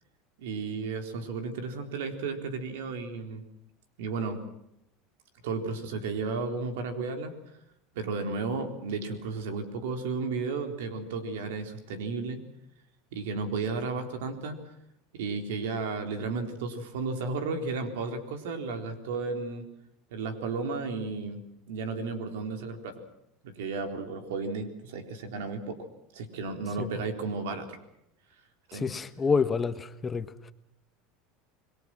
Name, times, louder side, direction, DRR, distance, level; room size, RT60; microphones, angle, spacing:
voice 1, 0.4-3.4 4.0-4.4 5.4-7.3 8.0-12.4 13.1-14.6 15.1-19.7 20.1-21.4 21.7-23.0 23.4-25.9 26.1-27.8 28.7-28.9, right 4 dB, 85° right, 4.0 m, -33 dB
voice 2, 28.7-30.3, left 5 dB, 20° left, 1.4 m, -28 dB
27.0 x 21.5 x 6.2 m
supercardioid pair, 115°, 0 cm